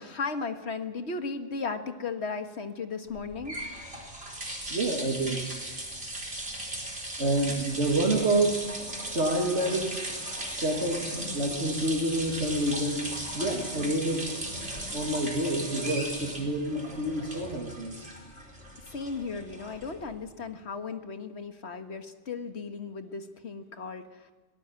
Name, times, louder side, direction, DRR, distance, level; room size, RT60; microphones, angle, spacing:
voice 1, 0.0-3.6 18.8-24.3, left 4 dB, 70° left, 7 dB, 1.8 m, -36 dB
sound 1, 3.1-20.2, right 1 dB, 60° right, 4.7 m, -37 dB
voice 2, 4.7-5.4 7.2-8.7 9.1-10.0 10.2-11.1 11.3-14.3 14.9-18.1, right 1 dB, 75° right, -2 dB, 2.8 m, -28 dB
24.0 x 18.0 x 9.0 m, 1.3 s
omnidirectional pair, 1.2 m